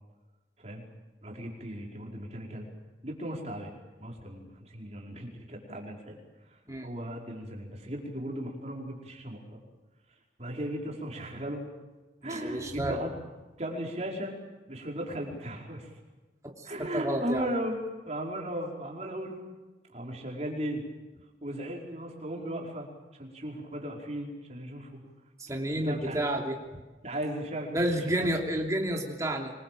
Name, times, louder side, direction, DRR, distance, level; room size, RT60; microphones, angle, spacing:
voice 1, 1.2-2.7 3.0-3.7 4.0-6.2 6.5-9.6 10.4-11.6 12.2-13.1 13.6-14.3 14.7-15.9 16.6-17.8 18.1-19.4 19.9-20.8 21.4-22.9 23.1-25.0 25.7-26.2 27.0-28.3, right 1 dB, 35° right, -1 dB, 5.0 m, -36 dB
voice 2, 12.3-13.0 16.4-17.4 25.4-26.5 27.7-29.5, right 1 dB, 20° right, 1 dB, 3.1 m, -30 dB
25.0 x 22.5 x 7.8 m, 1.2 s
head